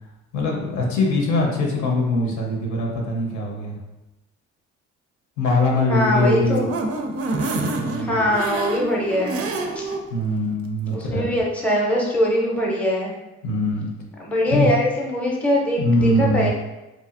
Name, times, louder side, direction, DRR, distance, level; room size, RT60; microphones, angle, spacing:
voice 1, 0.3-3.8 5.4-6.7 7.4-8.2 10.1-11.2 13.4-13.9 14.5-14.7 15.8-16.5, left 2 dB, 75° left, -1 dB, 0.7 m, -22 dB
voice 2, 5.9-6.7 8.0-9.9 10.9-13.1 14.2-16.5, equal, 5° left, -3 dB, 0.6 m, -22 dB
sound 1, 6.0-10.0 10.4-10.5 10.8-10.9, right 3 dB, 50° right, 0.4 m, -28 dB
2.9 x 2.4 x 2.4 m, 1.0 s
cardioid pair, 90°, 30 cm